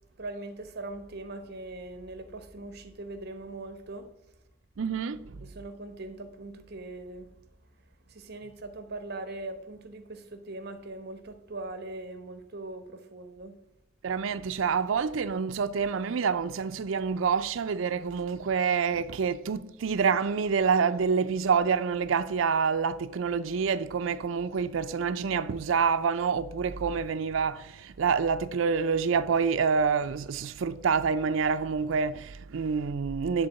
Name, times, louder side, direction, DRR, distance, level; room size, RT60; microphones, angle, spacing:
voice 1, 0.2-4.1 5.4-7.3 8.1-13.6, right 2 dB, 55° right, 1.1 m, -41 dB
voice 2, 4.8-5.5 14.0-33.5, right 6 dB, 80° right, 0.4 m, -27 dB
10.5 x 3.8 x 7.5 m
head